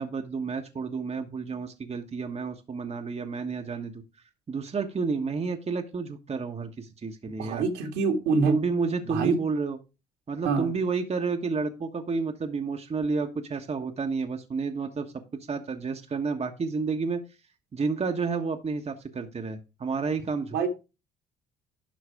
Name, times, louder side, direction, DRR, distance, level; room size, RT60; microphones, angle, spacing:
voice 1, 0.0-4.0 4.5-7.6 8.5-9.8 10.3-15.1 15.5-17.2 17.7-20.7, right 4 dB, 30° right, 1.3 m, -30 dB
voice 2, 7.4-8.6 9.0-9.4 10.4-10.7 20.5-20.7, right 4 dB, 70° right, 2.1 m, -25 dB
11.5 x 3.9 x 4.8 m
hypercardioid pair, 55°, 20 cm